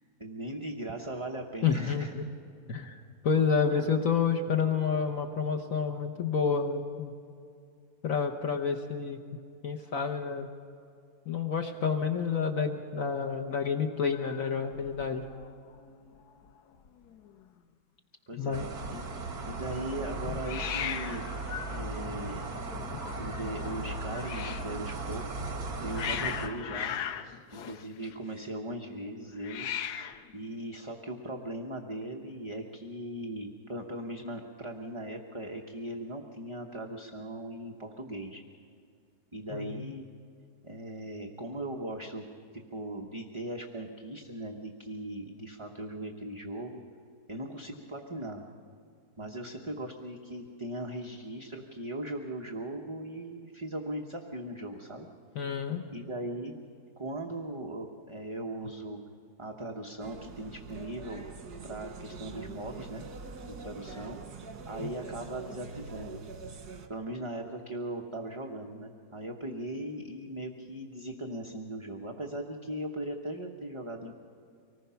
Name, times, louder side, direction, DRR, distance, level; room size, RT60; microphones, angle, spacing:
voice 1, 0.2-2.1 3.7-3.9 18.3-18.6 18.9-19.1 19.5-22.5 23.1-25.3 25.8-27.0 27.5-29.7 30.3-38.4 39.3-40.1 40.6-42.2 42.5-46.8 47.3-48.5 49.2-55.1 55.9-56.5 57.0-59.0 59.4-61.2 61.6-63.0 63.5-64.2 64.7-66.2 66.9-74.1, right 1 dB, 20° right, 1 dB, 1.0 m, -39 dB
voice 2, 1.6-2.2 2.7-7.1 8.0-9.2 9.6-10.5 11.3-15.2 18.4-18.7 39.5-39.9 55.3-55.8 64.8-64.9, left 6 dB, 60° left, 4 dB, 1.4 m, -29 dB
Hiss, 14.1-15.5 15.7-16.2 16.5-16.6 16.7-17.4 20.4-24.7 25.5-28.4 29.4-30.3, left 9 dB, 85° left, 1.3 m, -39 dB
sound 1, 18.5-26.5, right 2 dB, 70° right, 2.4 m, -37 dB
sound 2, 60.0-66.9, right 4 dB, 85° right, 2.0 m, -44 dB
25.0 x 19.0 x 5.7 m, 2.4 s
omnidirectional pair, 1.7 m